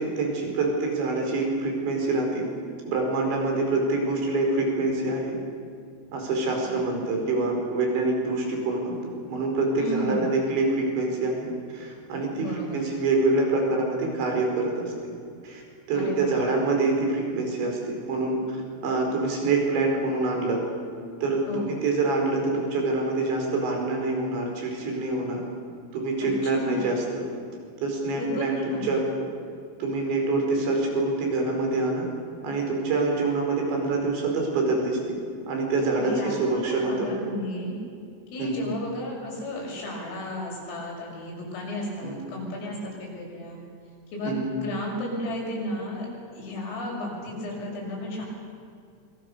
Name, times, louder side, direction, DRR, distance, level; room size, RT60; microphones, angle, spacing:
voice 1, 0.0-2.5 2.9-5.4 6.1-9.0 9.3-14.9 15.4-15.6 15.9-18.4 18.8-20.6 21.2-25.4 25.9-27.3 27.8-29.0 29.8-32.1 32.4-35.2 35.5-37.1 38.4-38.7 42.0-42.2 44.3-44.5, right 3 dB, 60° right, 1 dB, 7.0 m, -26 dB
voice 2, 6.6-7.0 9.7-10.2 12.3-12.8 15.9-16.4 21.5-21.7 26.2-26.8 28.2-28.9 36.0-37.8 38.3-43.6 44.1-46.1 46.3-48.3, left 1 dB, 80° left, -2 dB, 9.0 m, -33 dB
27.0 x 24.0 x 6.9 m, 2.3 s
omnidirectional pair, 5.8 m